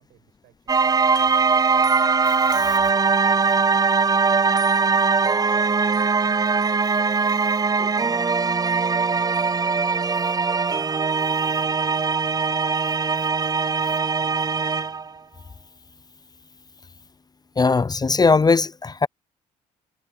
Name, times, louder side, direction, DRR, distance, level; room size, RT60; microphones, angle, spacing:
voice 1, 0.0-1.9 2.7-6.5 7.3-9.7 11.3-12.5 13.0-15.0, right 16 dB, 80° right, 7.2 m, -56 dB
sound 1, 0.7-15.1, right 5 dB, 25° right, 0.5 m, -21 dB
voice 2, 17.6-19.1, left 4 dB, 25° left, 0.6 m, -19 dB
supercardioid pair, 60°, 16 cm